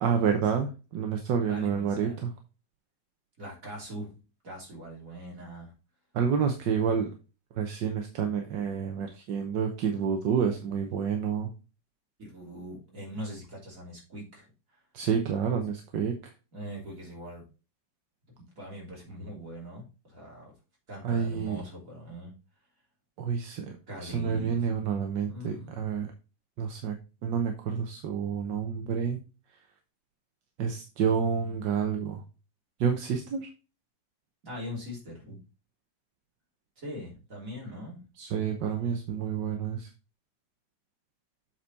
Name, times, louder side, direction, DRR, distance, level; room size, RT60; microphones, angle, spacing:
voice 1, 0.0-2.3 6.1-7.1 7.5-11.5 14.9-16.1 21.0-21.6 23.2-23.8 24.0-26.1 26.6-27.0 27.2-29.2 30.6-32.2 32.8-33.5 38.2-39.9, right 7 dB, 80° right, 5 dB, 1.5 m, -29 dB
voice 2, 1.5-2.3 3.4-4.1 4.4-5.7 10.7-10.8 12.2-14.8 16.5-17.4 18.6-20.5 20.9-22.3 23.9-24.7 25.3-25.8 34.4-35.4 36.8-38.1, equal, 45° right, -2 dB, 3.6 m, -41 dB
7.7 x 4.5 x 4.0 m, 0.31 s
omnidirectional pair, 1.9 m